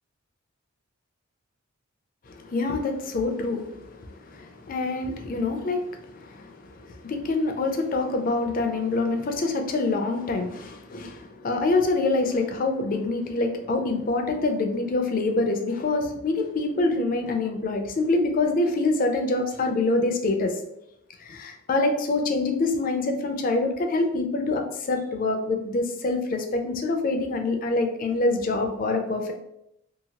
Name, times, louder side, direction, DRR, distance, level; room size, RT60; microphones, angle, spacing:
voice 1, 2.3-20.6 21.2-29.3, left 2 dB, 40° left, 4 dB, 0.4 m, -26 dB
2.8 x 2.7 x 2.8 m, 0.80 s
head